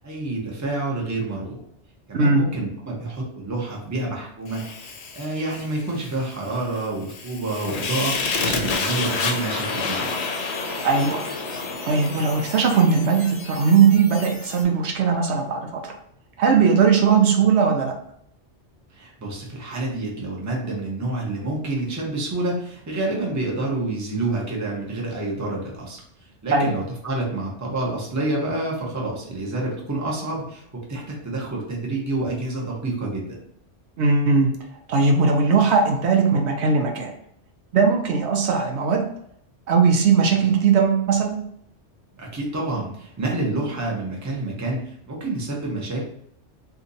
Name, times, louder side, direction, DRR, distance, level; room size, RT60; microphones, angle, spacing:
voice 1, 0.0-1.6 2.1-10.1 18.9-26.0 26.4-30.6 30.9-33.4 42.2-46.0, right 2 dB, 20° right, -2 dB, 0.7 m, -28 dB
Fire, 4.5-13.7, left 4 dB, 70° left, 0.9 m, -29 dB
sound 1, 8.7-14.6, left 2 dB, 35° left, 0.5 m, -40 dB
voice 2, 10.8-11.2 11.8-15.9 16.4-17.9 26.5-26.7 34.0-34.5 34.9-37.1 37.7-39.0 39.7-41.4, right 5 dB, 70° right, 2 dB, 0.8 m, -19 dB
2.8 x 2.5 x 3.9 m, 0.71 s
omnidirectional pair, 1.2 m